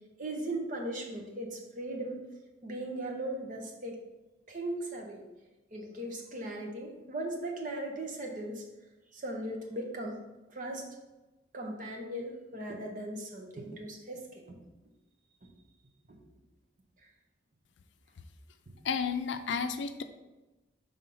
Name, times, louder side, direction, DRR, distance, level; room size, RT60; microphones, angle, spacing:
voice 1, 0.2-2.2 2.6-4.0 4.5-5.2 5.7-8.7 9.1-10.2 10.5-10.9 11.5-14.6 16.1-16.2, right 1 dB, 45° right, 1 dB, 1.0 m, -38 dB
voice 2, 18.8-20.0, left 6 dB, 70° left, 9 dB, 0.5 m, -32 dB
5.5 x 3.5 x 5.4 m, 1.1 s
head